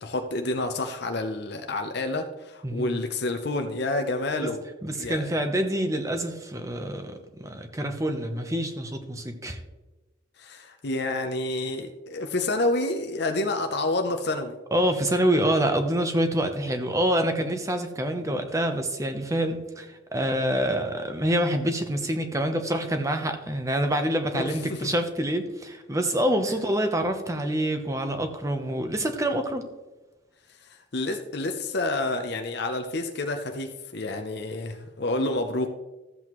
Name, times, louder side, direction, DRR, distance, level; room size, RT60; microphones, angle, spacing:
voice 1, 0.0-4.6 4.9-5.2 10.4-14.6 24.3-24.9 30.6-35.7, left 2 dB, 55° left, 5 dB, 0.6 m, -29 dB
voice 2, 2.6-3.0 4.8-9.6 14.7-29.6, right 1 dB, 15° right, 6 dB, 0.8 m, -26 dB
13.5 x 7.8 x 3.0 m, 1.1 s
head